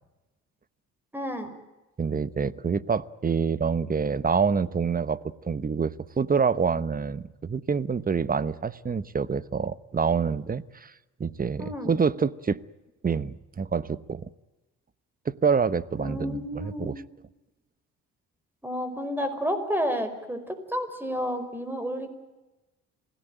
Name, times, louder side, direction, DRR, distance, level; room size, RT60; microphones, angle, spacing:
voice 1, 1.1-1.5 11.6-11.9 16.0-17.0 18.6-22.1, equal, 5° right, 9 dB, 5.0 m, -31 dB
voice 2, 2.0-10.9 11.2-12.6 13.0-14.3 15.2-17.0, right 5 dB, 30° right, 16 dB, 1.0 m, -27 dB
27.0 x 17.5 x 9.1 m, 1.1 s
cardioid pair, 90°, 30 cm